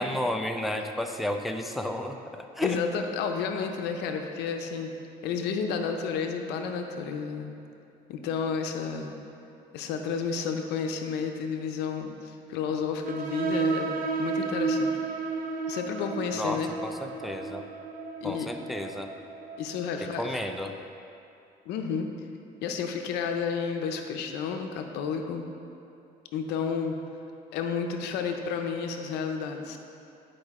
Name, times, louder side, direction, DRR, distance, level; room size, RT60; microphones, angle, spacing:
voice 1, 0.0-2.8 16.4-17.6 18.2-19.1 20.0-20.7, left 1 dB, ahead, 4 dB, 0.4 m, -32 dB
voice 2, 2.6-4.9 5.2-7.5 8.1-9.1 9.7-14.9 15.7-16.7 18.2-18.5 19.6-20.4 21.7-22.1 22.6-25.5 26.3-27.0 27.5-29.8, left 6 dB, 85° left, 5 dB, 0.7 m, -31 dB
sound 1, 13.0-20.3, right 4 dB, 60° right, 0.7 m, -32 dB
9.9 x 5.1 x 3.6 m, 2.6 s
cardioid pair, 110°, 17 cm